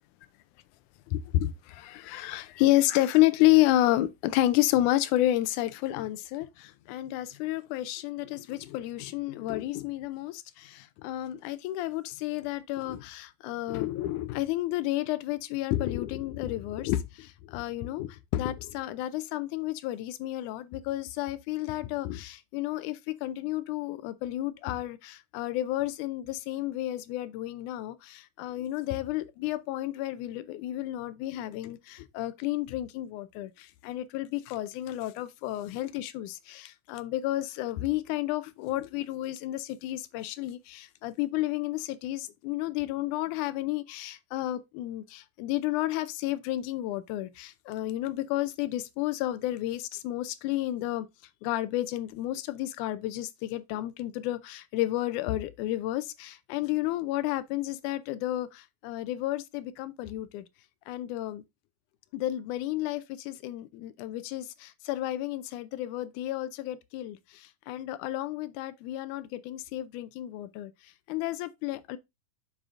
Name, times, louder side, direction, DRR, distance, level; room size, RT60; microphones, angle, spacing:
voice 1, 1.1-51.1 51.4-60.5 60.9-61.4 62.1-72.0, left 15 dB, 80° left, 1.8 m, -31 dB
7.5 x 6.3 x 2.5 m
omnidirectional pair, 4.0 m